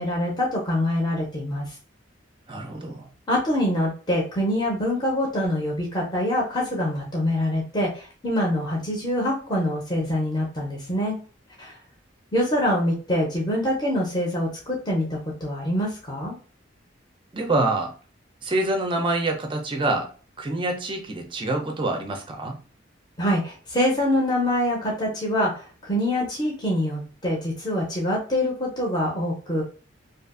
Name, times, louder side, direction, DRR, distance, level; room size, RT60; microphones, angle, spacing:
voice 1, 0.0-1.7 3.3-11.2 11.6-11.8 12.3-16.3 23.2-29.6, left 1 dB, 20° left, 0.6 m, -25 dB
voice 2, 2.5-3.1 17.3-18.0 18.4-20.1 20.4-22.6, right 2 dB, 25° right, 0.4 m, -26 dB
2.6 x 2.4 x 2.4 m
head